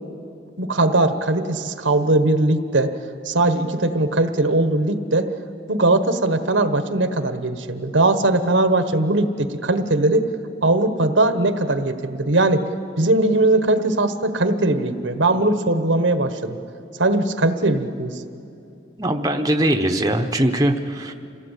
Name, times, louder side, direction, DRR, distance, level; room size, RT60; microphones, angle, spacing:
voice 1, 0.6-3.0 3.2-5.3 5.7-10.2 10.6-12.6 13.0-16.6 17.0-18.2, right 2 dB, 90° right, 9 dB, 1.3 m, -20 dB
voice 2, 19.0-21.1, right 1 dB, 20° right, 4 dB, 1.0 m, -21 dB
27.5 x 17.0 x 8.4 m, 2.7 s
head